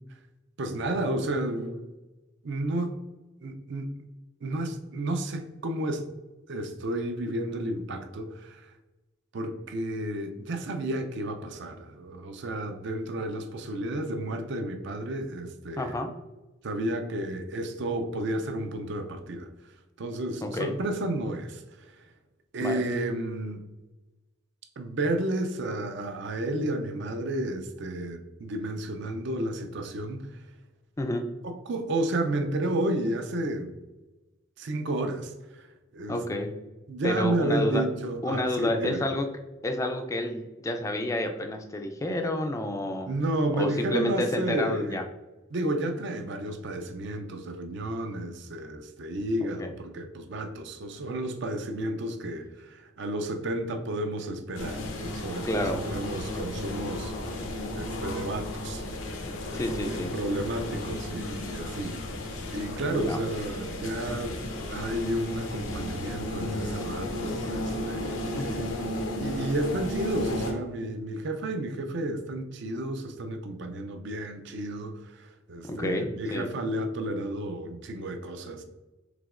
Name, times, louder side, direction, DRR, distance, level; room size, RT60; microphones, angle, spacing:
voice 1, 0.6-1.9 2.4-3.0 3.4-3.9 4.4-6.1 6.5-8.7 9.3-15.9 16.6-19.5 20.0-22.0 22.5-23.6 24.8-30.3 31.4-33.7 34.6-36.2 36.9-39.0 43.1-45.0 45.5-58.8 59.5-59.6 59.9-62.0 62.5-68.7 69.2-78.6, right 1 dB, 65° right, 6 dB, 0.5 m, -32 dB
voice 2, 15.8-16.1 20.4-20.7 22.6-22.8 31.0-31.3 36.1-36.5 37.0-37.8 38.2-39.3 39.6-43.1 43.5-45.0 49.4-49.7 55.4-55.8 59.5-60.1 62.9-63.2 68.4-68.7 75.6-76.5, left 1 dB, 15° left, 5 dB, 0.3 m, -30 dB
sound 1, 54.5-70.5, left 1 dB, 80° left, 0.6 m, -34 dB
4.9 x 3.5 x 2.5 m, 1.1 s
head